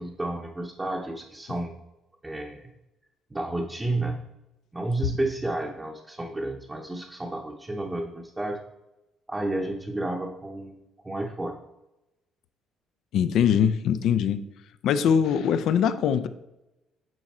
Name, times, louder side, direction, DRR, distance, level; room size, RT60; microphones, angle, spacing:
voice 1, 0.0-1.7 2.2-2.7 3.3-4.2 4.7-8.6 9.3-10.7 11.0-11.6, right 2 dB, 15° right, -1 dB, 0.8 m, -31 dB
voice 2, 13.1-14.4 14.8-16.3, left 8 dB, 70° left, 12 dB, 0.5 m, -22 dB
9.2 x 3.8 x 4.2 m, 0.96 s
cardioid pair, 110°, 0 cm